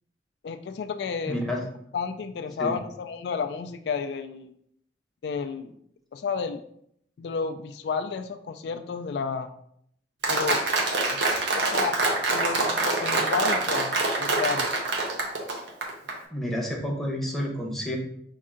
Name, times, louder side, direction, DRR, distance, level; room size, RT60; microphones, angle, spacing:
voice 1, 0.4-1.4 1.9-4.5 5.2-5.7 6.1-6.6 7.2-9.5 10.3-10.6 11.1-11.2 11.6-12.0 12.3-14.7, left 5 dB, 70° left, 8 dB, 0.3 m, -31 dB
voice 2, 1.3-1.6 2.6-2.7 16.3-18.0, equal, ahead, -2 dB, 0.8 m, -29 dB
Applause, 10.2-16.2, right 2 dB, 80° right, 0.9 m, -25 dB
5.3 x 2.7 x 3.6 m, 0.69 s
head